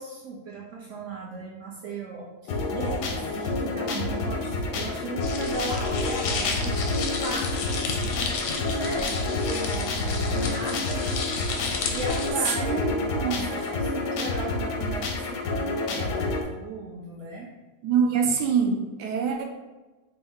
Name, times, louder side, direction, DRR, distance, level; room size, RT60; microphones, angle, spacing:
voice 1, 0.0-11.2 11.9-17.5, right 2 dB, 65° right, -3 dB, 0.7 m, -37 dB
sound 1, 2.5-16.4, left 3 dB, 85° left, 1.2 m, -29 dB
sound 2, 5.2-12.3, left 4 dB, 70° left, 0.8 m, -32 dB
voice 2, 12.7-13.4 17.8-19.4, right 6 dB, 80° right, 2 dB, 1.2 m, -25 dB
4.4 x 2.1 x 3.5 m, 1.2 s
omnidirectional pair, 1.8 m